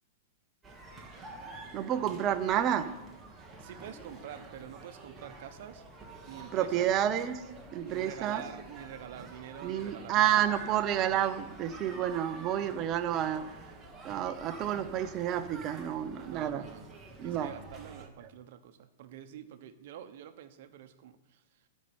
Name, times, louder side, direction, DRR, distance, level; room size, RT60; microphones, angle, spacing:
sound 1, 0.6-18.1, right 3 dB, 5° right, 1.2 m, -48 dB
voice 1, 1.7-2.9 6.5-7.4 7.7-8.4 9.6-13.5 14.0-16.7 17.2-17.5, right 10 dB, 25° right, 9 dB, 0.7 m, -30 dB
voice 2, 3.6-5.8 6.3-6.9 7.8-10.6 11.9-12.1 14.1-14.3 16.2-21.4, right 10 dB, 50° right, 9 dB, 1.0 m, -47 dB
12.0 x 5.5 x 7.9 m, 1.0 s
supercardioid pair, 170°, 0 cm